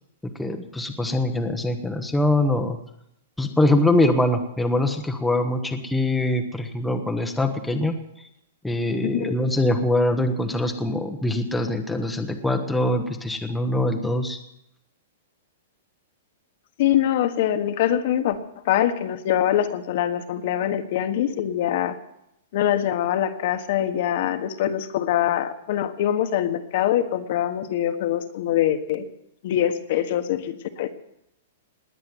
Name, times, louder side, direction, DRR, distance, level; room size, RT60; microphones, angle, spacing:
voice 1, 0.4-2.8 3.4-8.0 8.6-14.4, left 1 dB, 5° left, 3 dB, 1.1 m, -23 dB
voice 2, 9.0-9.3 16.8-18.4 18.6-22.0 22.5-29.1 29.4-30.9, left 11 dB, 50° left, 8 dB, 1.4 m, -23 dB
19.5 x 7.7 x 9.6 m, 0.80 s
hypercardioid pair, 160°, 0 cm